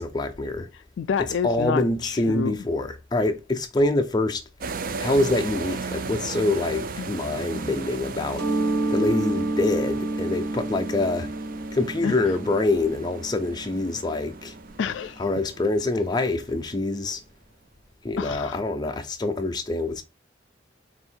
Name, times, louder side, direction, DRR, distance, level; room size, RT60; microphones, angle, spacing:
voice 1, 0.0-0.7 1.4-4.4 5.0-8.5 8.9-11.3 11.7-14.5 15.2-17.2 18.0-20.0, left 2 dB, 20° left, 0.5 m, -25 dB
voice 2, 0.7-2.6 7.0-7.1 12.0-12.4 14.8-15.2 18.2-18.6, left 7 dB, 75° left, 0.3 m, -29 dB
sound 1, 4.6-16.7, right 4 dB, 50° right, 0.4 m, -36 dB
Mallet percussion, 8.4-13.9, right 2 dB, 65° right, 1.9 m, -29 dB
3.5 x 2.5 x 4.5 m
head